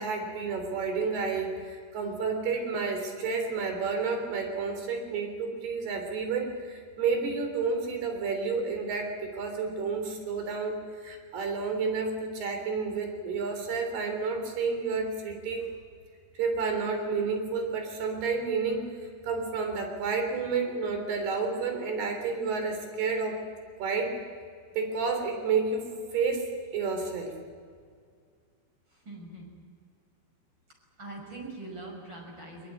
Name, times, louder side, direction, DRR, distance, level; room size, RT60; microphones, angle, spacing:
voice 1, 0.0-15.7 16.4-18.8 19.2-23.4 23.8-24.1 24.8-27.3, right 4 dB, 75° right, 5 dB, 5.5 m, -30 dB
voice 2, 28.9-29.5 31.0-32.7, right 2 dB, 25° right, 0 dB, 6.5 m, -42 dB
22.0 x 21.5 x 9.7 m, 2.1 s
omnidirectional pair, 4.6 m